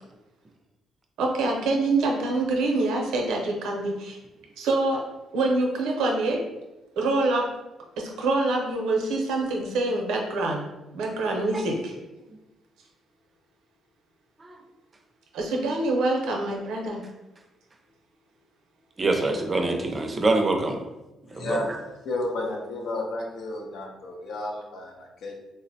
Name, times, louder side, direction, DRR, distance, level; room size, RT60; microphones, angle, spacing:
voice 1, 1.2-4.2 4.6-5.0 5.3-6.4 7.0-7.5 8.0-10.7 10.9-12.0 15.3-17.0, right 2 dB, 90° right, 0 dB, 0.6 m, -25 dB
voice 2, 19.0-20.8 21.3-21.7, right 2 dB, 30° right, 3 dB, 0.5 m, -25 dB
voice 3, 21.3-25.3, left 2 dB, 75° left, 0 dB, 0.6 m, -32 dB
3.7 x 2.0 x 2.7 m, 1.0 s
cardioid pair, 90°, 0 cm